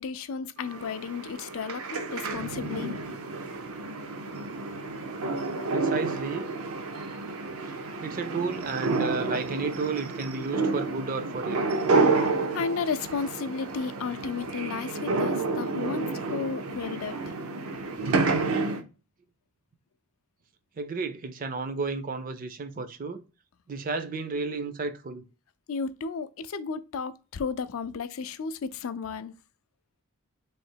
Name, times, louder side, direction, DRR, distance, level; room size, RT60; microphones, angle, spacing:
voice 1, 0.0-3.0 12.5-17.3 25.7-29.3, left 5 dB, 70° left, 0.4 m, -33 dB
sound 1, 0.6-18.8, right 3 dB, 80° right, 0.6 m, -30 dB
voice 2, 5.7-6.5 7.7-7.8 8.0-11.7 20.8-23.2 23.7-25.2, right 4 dB, 40° right, 0.4 m, -32 dB
3.1 x 2.8 x 4.3 m
head